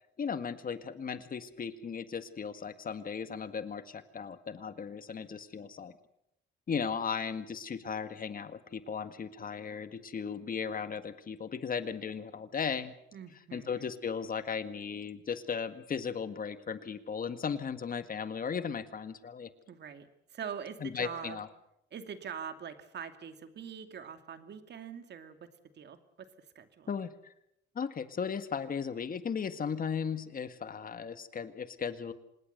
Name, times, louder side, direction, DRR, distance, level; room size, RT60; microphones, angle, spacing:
voice 1, 0.2-5.9 6.7-12.9 13.5-19.5 20.8-21.5 26.9-27.3 27.8-32.1, left 6 dB, 45° left, 11 dB, 1.9 m, -36 dB
voice 2, 13.1-13.9 19.7-21.4 21.9-26.9, right 7 dB, 60° right, 9 dB, 2.5 m, -44 dB
26.5 x 20.0 x 6.8 m, 0.80 s
cardioid pair, 90°, 20 cm